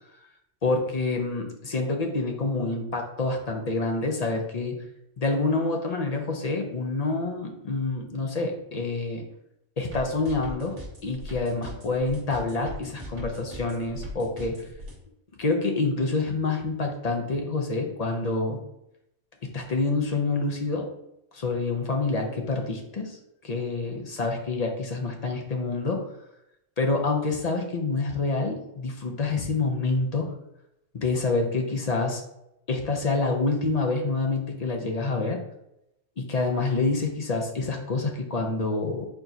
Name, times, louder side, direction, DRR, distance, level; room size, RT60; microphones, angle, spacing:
voice 1, 0.6-4.8 5.2-9.2 9.8-14.7 15.4-18.6 19.4-20.9 21.3-26.1 26.8-30.3 30.9-32.2 32.7-35.4 36.2-39.1, left 3 dB, 45° left, 3 dB, 0.5 m, -27 dB
sound 1, 9.9-15.0, equal, 55° right, 1.4 m, -40 dB
4.4 x 4.4 x 2.7 m, 0.82 s
omnidirectional pair, 1.3 m